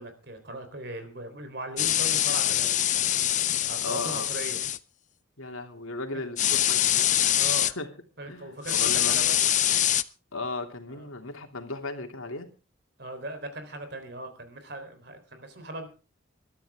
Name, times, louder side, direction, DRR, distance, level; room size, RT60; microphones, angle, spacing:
voice 1, 0.0-2.7 3.6-4.6 7.4-7.7 8.2-9.4 10.9-11.1 13.0-15.9, right 1 dB, 50° right, 8 dB, 3.9 m, -39 dB
sound 1, 1.8-4.8 6.4-7.7 8.7-10.0, left 12 dB, 35° left, 0.6 m, -24 dB
voice 2, 3.8-4.3 5.4-7.1 7.6-7.9 8.3-9.3 10.3-12.5, left 2 dB, 85° left, 4 dB, 2.9 m, -36 dB
21.0 x 13.0 x 3.7 m, 0.33 s
head